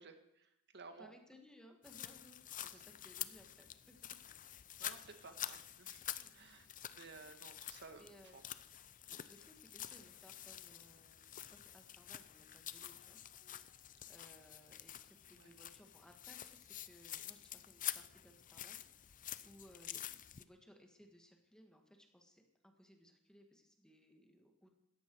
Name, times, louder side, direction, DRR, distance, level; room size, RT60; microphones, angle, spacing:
voice 1, 0.0-1.1 2.6-2.9 4.8-6.0 6.3-8.4 9.3-9.4 15.3-15.5, right 4 dB, 55° right, 7 dB, 1.8 m, -56 dB
voice 2, 1.0-4.0 6.2-6.3 8.0-8.4 9.0-13.7 14.1-20.0 20.3-24.7, equal, 5° left, 3 dB, 1.7 m, -63 dB
sound 1, 1.8-20.4, left 11 dB, 40° left, 0.6 m, -48 dB
16.5 x 14.0 x 4.7 m, 0.82 s
head